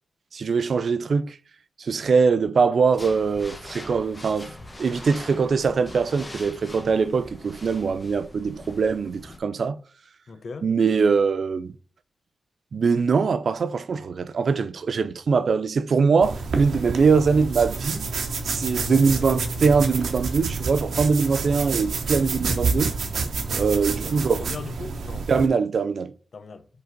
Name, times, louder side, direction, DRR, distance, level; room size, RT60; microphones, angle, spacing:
voice 1, 0.3-1.4 1.8-4.5 4.8-9.8 10.6-11.7 12.7-18.1 18.4-22.9 23.5-24.5 25.3-26.1, right 5 dB, 60° right, 0.5 m, -22 dB
sound 1, 2.9-9.4, left 1 dB, 20° left, 0.9 m, -42 dB
voice 2, 10.3-10.7 24.0-25.3 26.3-26.7, left 4 dB, 55° left, 0.7 m, -38 dB
sound 2, 16.2-25.5, right 4 dB, 85° right, 1.0 m, -28 dB
5.3 x 4.0 x 5.0 m
wide cardioid pair, 145°, 0 cm